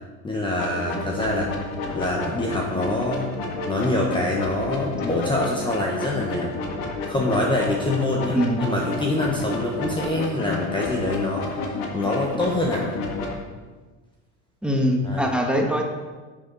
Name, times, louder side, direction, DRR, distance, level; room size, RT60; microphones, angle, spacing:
voice 1, 0.2-1.5 1.9-3.3 3.7-6.6 7.1-13.0 15.0-15.4, left 2 dB, 15° left, -1 dB, 1.2 m, -25 dB
sound 1, 0.5-13.3, left 3 dB, 65° left, 1.9 m, -31 dB
voice 2, 8.3-8.6 14.6-15.8, equal, 5° right, 1 dB, 1.5 m, -22 dB
10.5 x 7.0 x 4.1 m, 1.3 s
supercardioid pair, 100°, 37 cm